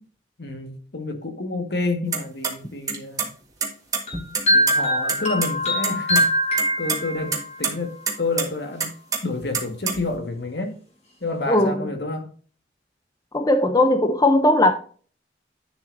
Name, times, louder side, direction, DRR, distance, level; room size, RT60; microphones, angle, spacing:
voice 1, 0.4-3.2 4.5-6.3 6.8-8.9 9.2-10.8 11.2-12.3, left 3 dB, 70° left, 1.6 m, -29 dB
sound 1, 2.1-2.5 2.9-3.3 3.6-4.7 5.1-5.2 5.4-5.5 5.8-6.2 6.6-7.0 7.3-7.7 8.1-8.4 8.8-10.2, right 5 dB, 20° right, 1.5 m, -25 dB
sound 2, 4.1-7.6, equal, 40° left, 3.7 m, -22 dB
voice 2, 11.5-11.9 13.3-14.7, left 1 dB, 20° left, 0.6 m, -18 dB
9.9 x 7.0 x 2.6 m
head